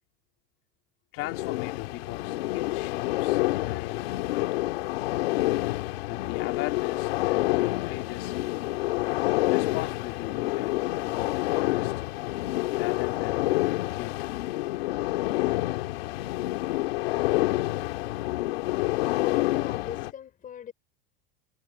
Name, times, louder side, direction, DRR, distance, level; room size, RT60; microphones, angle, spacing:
voice 1, 1.1-4.6 6.0-8.3 9.5-11.9 12.7-13.5 13.8-14.2, left 19 dB, 50° left, 3.2 m, -39 dB
sound 1, 1.2-20.1, left 18 dB, 85° left, 2.4 m, -28 dB
voice 2, 19.1-20.7, left 9 dB, 30° left, 5.3 m, -40 dB
supercardioid pair, 140°, 29 cm